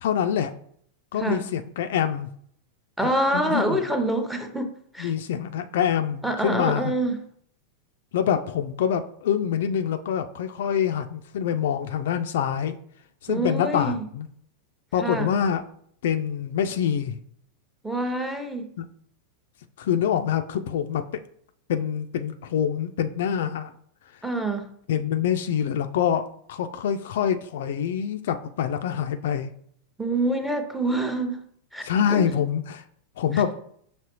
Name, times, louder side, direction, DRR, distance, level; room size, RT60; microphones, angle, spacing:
voice 1, 0.0-0.5 1.1-2.3 3.3-3.8 5.0-6.9 8.1-12.8 13.2-14.3 14.9-15.6 16.0-17.2 19.8-21.0 21.7-23.7 24.9-29.5 31.8-32.8 33.2-33.5, left 8 dB, 55° left, 0.3 m, -25 dB
voice 2, 1.2-1.5 3.0-5.1 6.2-7.2 13.3-14.1 15.0-15.3 17.8-18.7 24.2-24.7 30.0-31.4 31.7-32.3 33.3-33.4, right 1 dB, 5° right, 0.7 m, -26 dB
6.0 x 2.9 x 2.9 m
figure-of-eight pair, 90°, 0 cm